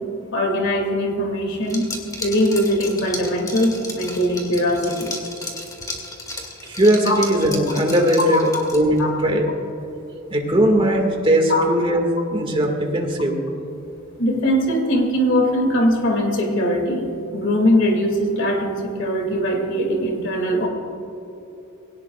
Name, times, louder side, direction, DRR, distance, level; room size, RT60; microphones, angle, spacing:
voice 1, 0.3-1.9 2.2-5.1 7.1-7.2 8.3-8.6 9.0-9.1 11.5-11.6 14.2-20.7, equal, 60° left, 1 dB, 2.6 m, -21 dB
Liquid, 1.6-9.0, left 2 dB, 15° left, 2.2 m, -34 dB
voice 2, 6.6-9.5 10.3-12.0 12.3-13.4, right 1 dB, 25° right, 2 dB, 2.0 m, -19 dB
22.0 x 18.0 x 2.4 m, 3.0 s
head